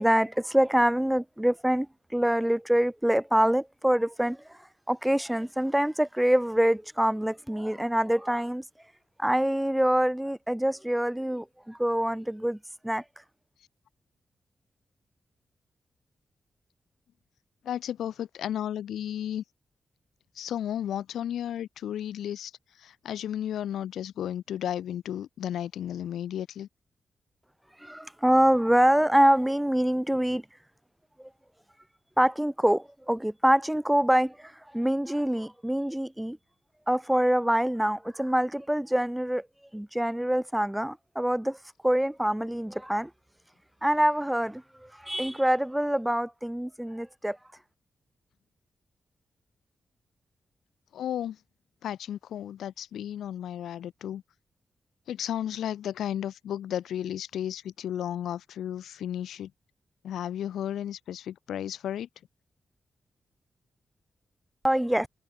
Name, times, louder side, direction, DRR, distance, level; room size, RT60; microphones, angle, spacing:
voice 1, 0.0-1.9 2.1-4.4 4.9-8.6 9.2-12.6 12.8-13.0 27.8-30.4 32.2-36.4 36.9-39.5 39.7-41.6 41.8-43.1 43.8-47.4 64.6-65.1, right 1 dB, 5° right, 2.0 m, -25 dB
voice 2, 17.6-19.4 20.3-26.7 50.9-51.4 51.8-54.2 55.1-59.5 60.0-62.1, left 10 dB, 85° left, 2.3 m, -33 dB
supercardioid pair, 45°, 0 cm